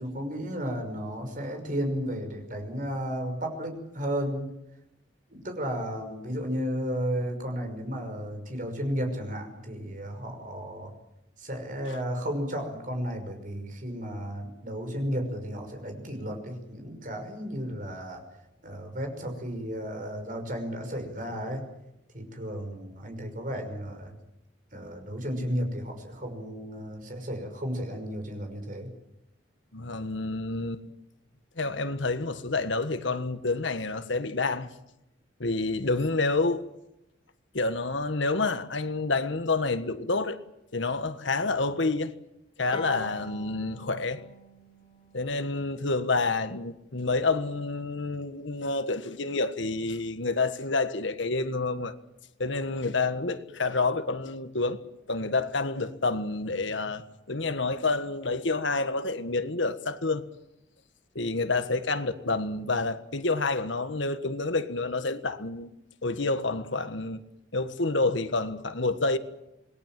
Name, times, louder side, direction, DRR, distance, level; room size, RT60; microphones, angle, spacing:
voice 1, 0.0-4.5 5.3-10.9 11.4-18.2 18.6-21.6 22.1-24.2 24.7-28.9, equal, 45° right, 5.9 m, -33 dB
voice 2, 29.7-30.8 31.6-34.7 35.4-36.6 37.5-40.4 40.7-42.1 42.6-44.2 45.1-51.9 52.4-54.8 55.1-60.2 61.1-65.7 66.0-67.2 67.5-69.2, left 3 dB, 70° left, 1.5 m, -28 dB
Bowed string instrument, 42.7-46.0, left 2 dB, 25° left, 4.3 m, -44 dB
27.5 x 20.5 x 7.6 m
head